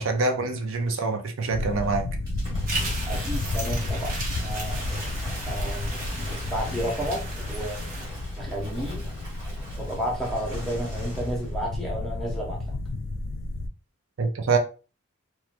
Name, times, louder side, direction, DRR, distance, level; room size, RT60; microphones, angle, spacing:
voice 1, 0.0-2.0 14.2-14.6, right 3 dB, 70° right, 5 dB, 0.5 m, -25 dB
sound 1, 1.5-13.7, left 2 dB, 60° left, 0.4 m, -32 dB
Waves surf / Splash splatter, 2.3-11.5, equal, 15° right, 1.5 m, -43 dB
sound 2, 2.7-8.1, right 2 dB, 40° right, 0.8 m, -36 dB
voice 2, 3.1-4.8 5.3-5.9 6.4-7.9 8.4-9.0 9.8-12.6, equal, ahead, -3 dB, 0.7 m, -32 dB
3.0 x 2.3 x 2.4 m, 0.35 s
head